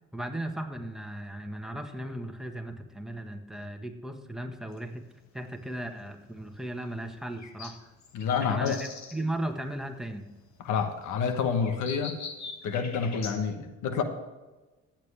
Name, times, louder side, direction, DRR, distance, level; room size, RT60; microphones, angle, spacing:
voice 1, 0.1-5.0 5.3-7.8 8.5-8.8 9.1-10.3, right 1 dB, ahead, 5 dB, 1.5 m, -36 dB
sound 1, 4.7-13.4, left 5 dB, 65° left, 1.9 m, -45 dB
voice 2, 8.1-8.8 10.6-12.2 12.6-14.0, left 6 dB, 90° left, 7 dB, 1.3 m, -28 dB
15.0 x 9.0 x 3.4 m, 1.2 s
cardioid pair, 90°, 30 cm